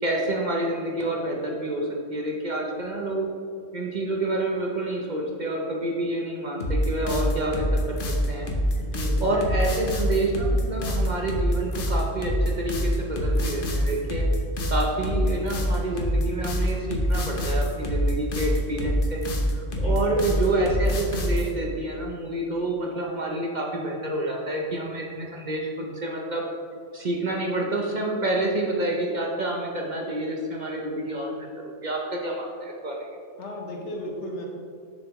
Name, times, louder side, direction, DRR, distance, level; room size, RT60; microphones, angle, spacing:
voice 1, 0.0-3.3 3.7-8.0 8.3-8.5 9.2-14.2 14.7-19.2 19.5-26.4 26.9-33.1, right 2 dB, 45° right, -1 dB, 0.8 m, -28 dB
sound 1, 6.6-21.5, equal, 50° left, 1.0 m, -25 dB
voice 2, 8.8-9.4 19.7-20.0 33.4-34.5, left 1 dB, 70° left, 1 dB, 1.3 m, -35 dB
7.1 x 6.2 x 3.1 m, 2.3 s
omnidirectional pair, 1.3 m